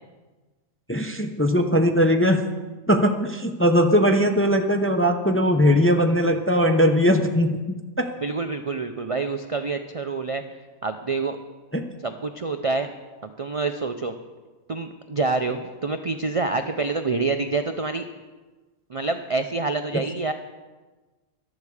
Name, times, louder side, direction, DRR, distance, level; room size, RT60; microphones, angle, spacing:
voice 1, 0.9-2.4 2.9-7.6 8.0-8.1 11.7-11.8, equal, 15° left, 5 dB, 0.5 m, -19 dB
voice 2, 8.2-10.4 10.8-11.4 12.0-12.9 13.2-14.1 14.7-18.0 18.9-20.3, right 3 dB, 55° right, 7 dB, 0.3 m, -27 dB
13.5 x 12.0 x 4.9 m, 1.2 s
omnidirectional pair, 1.5 m